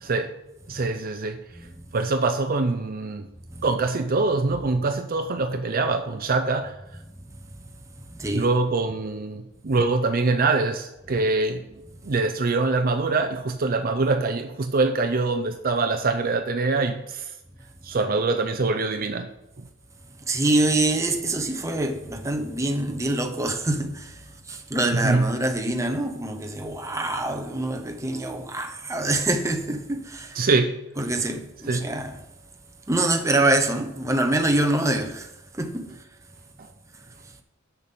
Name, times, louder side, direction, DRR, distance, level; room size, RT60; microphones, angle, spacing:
voice 1, 0.0-0.3 0.7-1.4 1.9-3.3 3.6-6.8 8.3-11.7 12.0-17.3 17.8-19.3 24.9-25.3 30.3-30.8 31.7-31.9 36.6-36.7, right 3 dB, 45° right, 0.6 m, -24 dB
voice 2, 7.3-7.7 8.1-8.5 20.2-30.4 31.0-32.2 32.9-36.0, right 2 dB, 15° right, 0.9 m, -25 dB
7.1 x 5.9 x 6.7 m
head